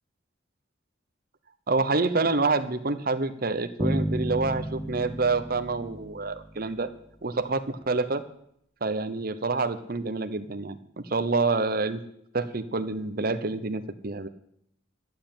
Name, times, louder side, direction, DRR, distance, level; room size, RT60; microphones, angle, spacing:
voice 1, 1.7-6.9 7.2-8.3 8.8-12.0 12.3-14.3, right 3 dB, 50° right, 10 dB, 0.9 m, -27 dB
Bass guitar, 3.8-6.9, right 1 dB, ahead, 0.7 m, -32 dB
12.5 x 7.8 x 8.9 m, 0.72 s
head